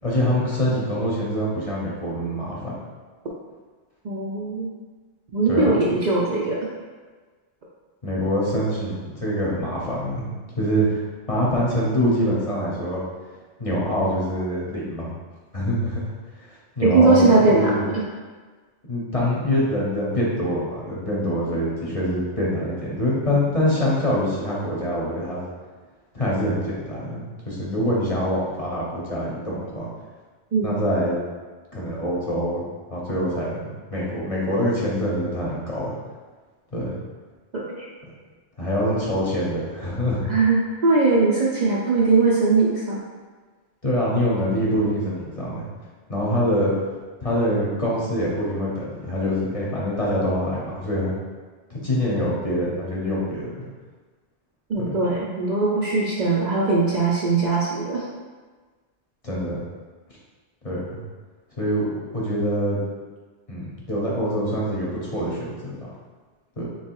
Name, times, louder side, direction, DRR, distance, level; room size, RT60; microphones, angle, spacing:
voice 1, 0.0-2.7 5.5-5.8 8.0-11.0 11.3-13.0 13.6-15.1 15.5-16.1 16.4-17.8 18.9-25.5 26.1-29.9 30.6-31.2 31.7-36.0 36.7-37.0 38.6-40.2 43.8-45.6 46.1-46.7 47.2-51.1 51.7-53.7 54.8-54.9 59.2-59.6 60.6-61.0 61.6-61.9 62.1-62.8 63.5-65.9 66.6-66.7, equal, 35° left, -6 dB, 0.9 m, -25 dB
voice 2, 4.0-4.7 5.3-6.6 16.8-18.0 30.5-30.8 37.5-37.9 40.3-43.0 54.7-58.0, right 3 dB, 50° right, -5 dB, 0.6 m, -20 dB
3.3 x 3.1 x 4.5 m, 1.4 s
omnidirectional pair, 1.1 m